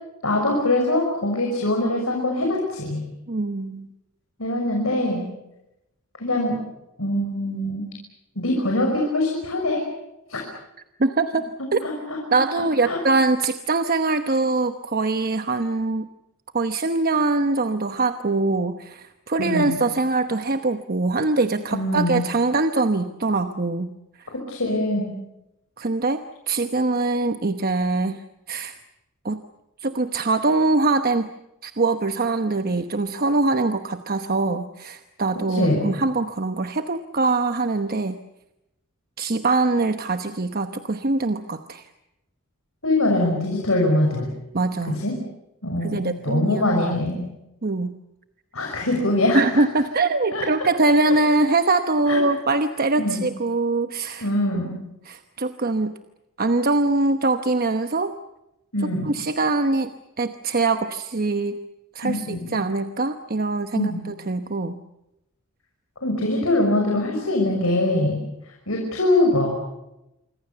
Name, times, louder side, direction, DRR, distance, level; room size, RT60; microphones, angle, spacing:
voice 1, 0.2-3.0 4.4-5.3 6.2-6.6 7.0-7.9 8.4-9.9 10.3-10.4 11.8-11.9 12.9-13.0 19.4-19.8 21.7-22.3 24.3-25.1 35.5-35.9 42.8-44.3 44.9-45.2 45.6-47.2 48.5-49.4 50.3-50.4 52.1-52.2 53.0-53.2 54.2-54.8 58.7-59.1 62.0-62.6 63.7-64.1 66.0-68.2 68.7-69.6, left 1 dB, 70° left, 0 dB, 5.9 m, -23 dB
voice 2, 3.3-3.9 11.0-11.8 12.3-16.1 16.5-24.3 25.8-28.8 29.2-29.4 29.8-31.3 31.6-38.2 39.2-41.9 44.5-45.0 45.8-46.6 47.6-48.0 49.3-54.3 55.0-56.0 56.4-58.1 59.0-61.6 61.9-64.8, right 3 dB, 45° right, 8 dB, 1.0 m, -23 dB
27.0 x 24.5 x 6.9 m, 0.90 s
head